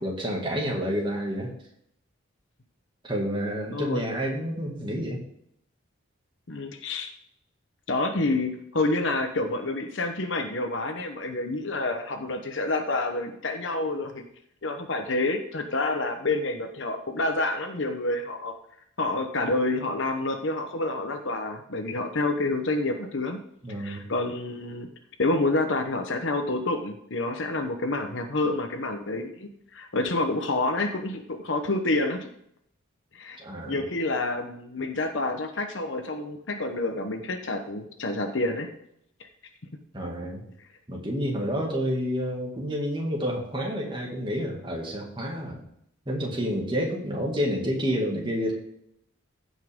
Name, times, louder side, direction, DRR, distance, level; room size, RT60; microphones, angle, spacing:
voice 1, 0.0-1.5 3.0-5.2 23.6-24.0 33.4-33.8 39.9-40.4 40.9-45.6 46.1-48.5, equal, 25° right, -1 dB, 2.1 m, -29 dB
voice 2, 3.7-4.0 6.5-7.1 7.9-14.2 14.6-18.5 19.0-23.4 23.8-24.9 25.2-32.3 33.1-33.4 33.7-38.7 39.2-39.3, left 2 dB, 65° left, 5 dB, 0.9 m, -28 dB
15.5 x 5.6 x 3.7 m, 0.72 s
head